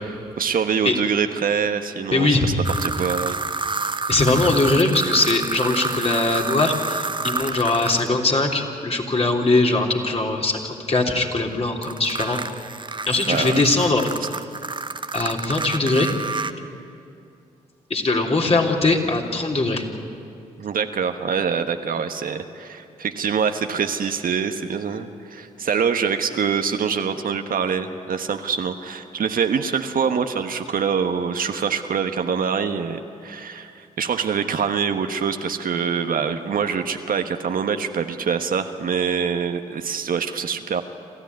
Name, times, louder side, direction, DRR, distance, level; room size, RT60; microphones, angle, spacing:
voice 1, 0.4-2.5 2.8-3.4 6.3-6.4 13.3-13.6 20.6-40.8, right 6 dB, 60° right, 7 dB, 1.3 m, -25 dB
voice 2, 2.1-2.5 4.1-12.4 13.1-14.0 15.1-16.1 17.9-19.8, left 2 dB, 35° left, 1 dB, 3.4 m, -21 dB
sound 1, 2.6-8.1 11.8-16.5, right 3 dB, 30° right, 1.1 m, -29 dB
27.5 x 14.0 x 9.6 m, 2.5 s
hypercardioid pair, 40°, 17 cm